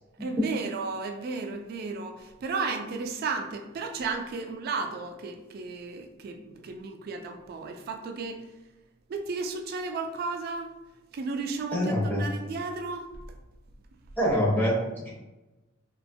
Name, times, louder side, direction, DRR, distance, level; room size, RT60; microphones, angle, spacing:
voice 1, 0.2-8.4 9.1-10.7 11.1-13.1, right 4 dB, 50° right, 5 dB, 0.3 m, -34 dB
voice 2, 11.7-12.2 14.2-15.1, equal, 10° left, -5 dB, 0.5 m, -25 dB
2.7 x 2.2 x 2.6 m, 1.0 s
head